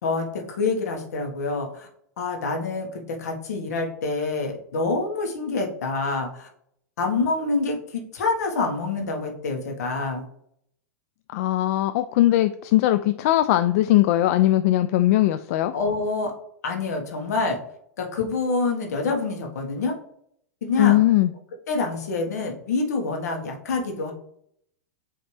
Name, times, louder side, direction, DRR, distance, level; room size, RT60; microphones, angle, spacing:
voice 1, 0.0-1.9 2.2-6.5 7.0-10.2 15.7-16.3 16.6-17.6 18.0-19.9 20.6-21.0 21.7-24.1, left 3 dB, 75° left, 2 dB, 1.5 m, -26 dB
voice 2, 11.3-15.7 20.8-21.3, left 14 dB, 60° left, 10 dB, 0.3 m, -20 dB
8.7 x 3.2 x 3.3 m, 0.70 s
hypercardioid pair, 105°, 9 cm